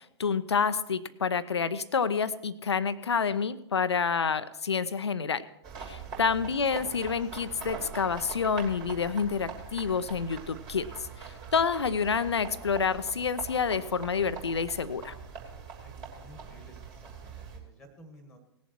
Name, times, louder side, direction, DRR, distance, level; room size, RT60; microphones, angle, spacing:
voice 1, 0.0-5.4 5.9-10.9 11.2-15.1, left 6 dB, 70° left, 15 dB, 0.7 m, -28 dB
sound 1, 5.6-17.6, right 5 dB, 30° right, 3.4 m, -43 dB
voice 2, 15.7-18.4, equal, 5° left, 6 dB, 1.9 m, -54 dB
18.5 x 7.3 x 4.5 m, 0.83 s
figure-of-eight pair, 110°, 15 cm